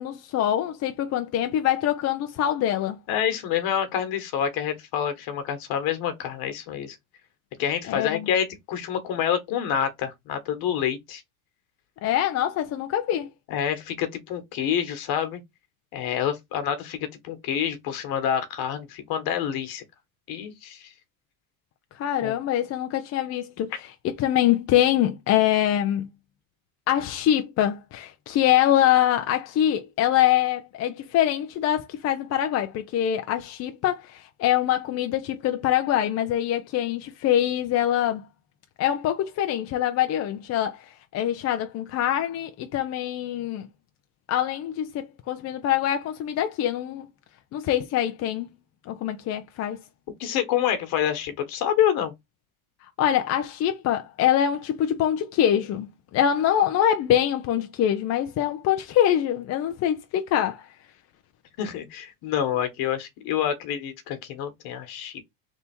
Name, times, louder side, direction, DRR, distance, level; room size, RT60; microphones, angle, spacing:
voice 1, 0.0-3.0 7.9-8.3 12.0-13.3 22.0-26.1 26.9-38.3 38.8-43.7 44.3-47.1 47.5-48.5 48.9-49.8 53.0-60.7, left 11 dB, 40° left, 0.6 m, -24 dB
voice 2, 3.1-6.9 7.6-11.2 13.5-15.4 15.9-19.8 20.3-20.9 22.2-22.3 50.2-52.1 61.6-65.2, left 9 dB, 60° left, 1.4 m, -27 dB
3.5 x 2.8 x 4.3 m
supercardioid pair, 115°, 41 cm